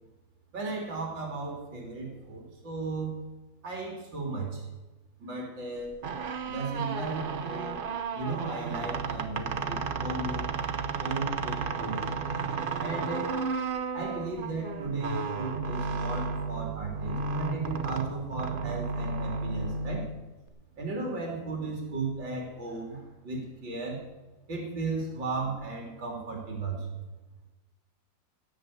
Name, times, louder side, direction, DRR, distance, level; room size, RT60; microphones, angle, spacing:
voice 1, 0.5-3.1 3.6-4.6 5.2-6.0 6.5-7.8 8.1-10.5 11.0-12.1 12.8-13.4 13.9-20.0 20.8-24.0 24.5-26.8, right 3 dB, 80° right, 0 dB, 4.0 m, -35 dB
sound 1, 5.9-20.5, right 4 dB, 50° right, 0.6 m, -33 dB
17.0 x 5.8 x 8.6 m, 1.1 s
omnidirectional pair, 2.0 m